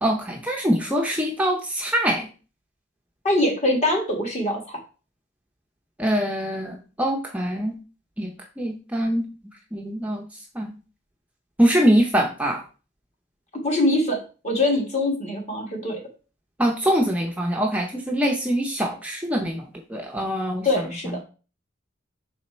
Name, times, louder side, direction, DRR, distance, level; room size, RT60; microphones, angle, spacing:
voice 1, 0.0-2.2 6.0-7.7 8.2-8.3 8.6-9.2 9.7-10.2 10.6-10.7 11.6-12.6 16.6-19.6 19.9-20.7, equal, 5° right, 1 dB, 0.6 m, -23 dB
voice 2, 3.2-4.8 13.6-14.2 14.4-16.0 20.6-21.2, left 1 dB, 35° left, 1 dB, 1.7 m, -23 dB
5.7 x 4.3 x 4.3 m, 0.35 s
head